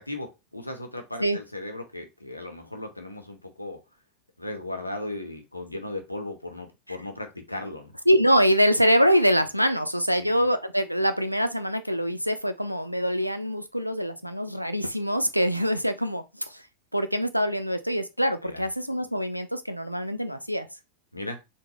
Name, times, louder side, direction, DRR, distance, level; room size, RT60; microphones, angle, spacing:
voice 1, 0.0-3.8 4.4-7.9 10.1-10.4 18.4-18.6 21.1-21.4, left 2 dB, 85° left, 0.7 m, -36 dB
voice 2, 8.1-16.6 16.9-20.7, equal, 90° right, 0.4 m, -24 dB
3.8 x 2.1 x 3.0 m
figure-of-eight pair, 90°, 0 cm